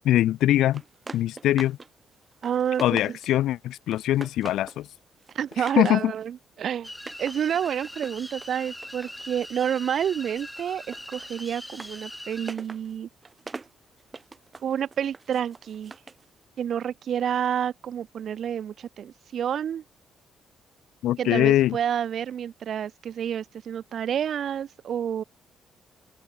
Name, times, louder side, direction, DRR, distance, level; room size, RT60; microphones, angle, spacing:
voice 1, 0.0-0.8 1.1-1.8 2.8-4.9 5.8-6.1 21.0-21.8, left 13 dB, 80° left, 1.0 m, -22 dB
sound 1, 0.7-1.9 2.2-3.5 3.9-4.8 5.2-6.1 6.9-9.9 10.2-16.3, right 4 dB, 30° right, 3.4 m, -44 dB
voice 2, 2.4-3.2 5.3-6.9 7.2-13.1 14.6-15.9 16.6-19.8 21.2-25.2, right 9 dB, 60° right, 0.4 m, -29 dB
sound 2, 6.8-12.5, equal, 5° left, 7.4 m, -41 dB
cardioid pair, 90°, 0 cm